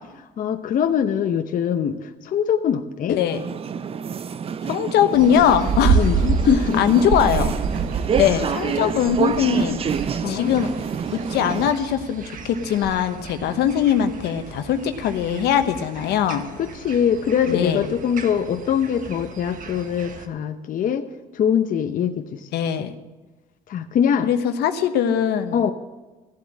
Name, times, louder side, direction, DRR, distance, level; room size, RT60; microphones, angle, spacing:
voice 1, 0.4-3.2 5.9-6.8 8.3-8.5 10.2-10.5 16.6-21.1 21.3-22.5 22.8-22.9 23.7-24.3 25.5-25.7, left 8 dB, 50° left, 7 dB, 0.8 m, -23 dB
voice 2, 3.1-3.4 4.7-6.1 6.8-7.5 8.2-9.8 10.3-10.7 11.1-16.4 17.5-17.9 22.5-22.9 24.2-25.6, left 9 dB, 80° left, 9 dB, 1.1 m, -21 dB
sound 1, 3.3-11.7, right 7 dB, 35° right, 0.6 m, -28 dB
sound 2, 5.1-20.3, right 5 dB, 50° right, 1.3 m, -29 dB
14.5 x 8.0 x 7.5 m, 1.2 s
cardioid pair, 110°, 17 cm